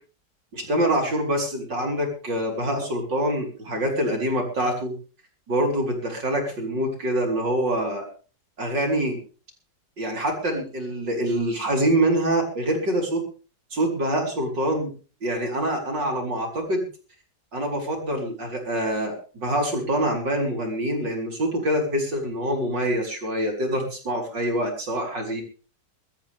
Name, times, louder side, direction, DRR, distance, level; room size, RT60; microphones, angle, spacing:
voice 1, 0.5-4.9 5.5-8.1 8.6-9.2 10.0-13.2 13.7-14.9 15.2-16.8 17.5-25.4, right 1 dB, 80° right, 1 dB, 5.0 m, -25 dB
23.0 x 13.0 x 3.6 m, 0.39 s
omnidirectional pair, 1.9 m